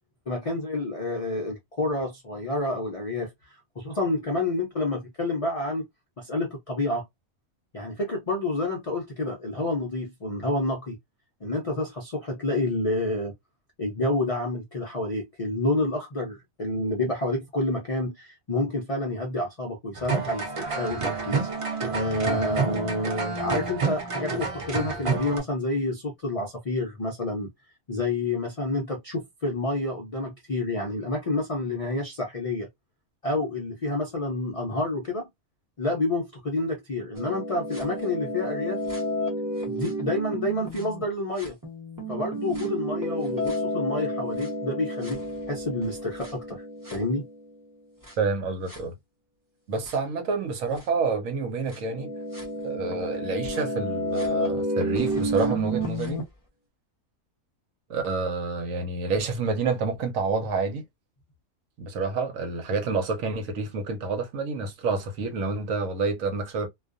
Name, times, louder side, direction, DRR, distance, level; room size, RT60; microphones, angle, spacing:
voice 1, 0.3-5.9 6.2-7.0 7.7-11.0 11.4-13.3 13.8-21.5 21.9-27.5 27.9-32.7 33.2-35.3 35.8-38.8 39.7-41.6 42.1-45.2 45.5-46.6 46.9-47.2, left 2 dB, 55° left, 0.4 m, -29 dB
sound 1, 19.9-25.4, right 4 dB, 45° right, 0.4 m, -29 dB
sound 2, 37.2-41.0 41.4-47.5 48.0-48.1 48.7-48.8 49.9-50.0 50.8-50.9 51.7-56.2, equal, 15° right, 0.8 m, -31 dB
voice 2, 48.2-48.9 49.7-52.1 52.6-56.2 57.9-60.8 61.8-66.7, right 4 dB, 75° right, 1.1 m, -28 dB
2.3 x 2.3 x 2.4 m
omnidirectional pair, 1.4 m